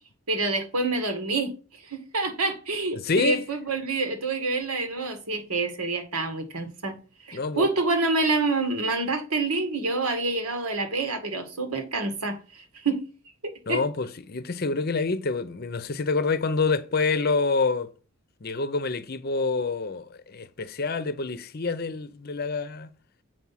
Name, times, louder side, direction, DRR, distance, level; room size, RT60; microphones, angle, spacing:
voice 1, 0.3-1.5 1.9-7.0 7.3-13.1 13.4-13.8, right 3 dB, 85° right, 1.8 m, -27 dB
voice 2, 2.9-3.4 7.3-7.7 13.7-17.9 18.4-22.9, left 4 dB, 45° left, 0.6 m, -27 dB
7.8 x 4.7 x 5.7 m
head